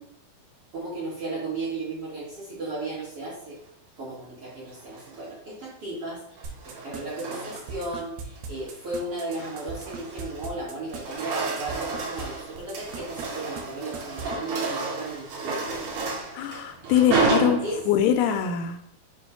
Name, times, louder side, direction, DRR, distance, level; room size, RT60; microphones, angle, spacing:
voice 1, 0.7-3.6 4.0-16.0 17.6-17.8, right 2 dB, 50° right, -7 dB, 1.9 m, -35 dB
sound 1, 4.8-5.3 6.4-7.9 8.4-8.7 9.1-10.6 10.8-18.2, right 4 dB, 65° right, 2.6 m, -31 dB
sound 2, 6.4-12.2 12.6-13.3 13.6-13.7 13.9-14.4, right 5 dB, 85° right, 2.8 m, -38 dB
voice 2, 16.3-17.6 17.9-18.8, left 9 dB, 85° left, 8 dB, 2.5 m, -23 dB
6.9 x 2.6 x 5.7 m, 0.73 s
omnidirectional pair, 4.3 m